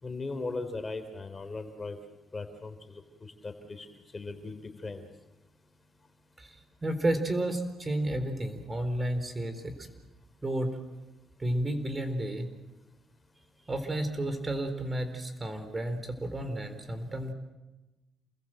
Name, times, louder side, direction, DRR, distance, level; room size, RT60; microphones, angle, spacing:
voice 1, 0.0-2.0 2.3-3.0 3.4-3.9 4.1-5.0, left 3 dB, 30° left, 8 dB, 3.5 m, -38 dB
voice 2, 6.4-9.9 10.4-10.7 11.4-12.5 13.7-17.3, right 1 dB, 25° right, 8 dB, 4.3 m, -32 dB
29.0 x 21.5 x 7.8 m, 1.1 s
cardioid pair, 90°, 0 cm